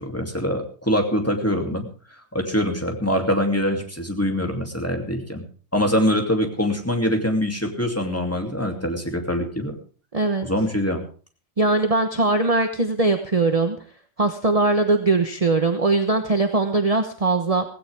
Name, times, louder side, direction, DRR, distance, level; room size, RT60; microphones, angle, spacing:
voice 1, 0.0-1.9 2.3-5.4 5.7-9.8 10.4-11.0, equal, 10° left, 3 dB, 2.7 m, -24 dB
voice 2, 10.1-10.5 11.6-13.8 14.2-17.6, right 3 dB, 30° right, 6 dB, 1.2 m, -20 dB
17.0 x 16.5 x 3.5 m, 0.39 s
omnidirectional pair, 1.3 m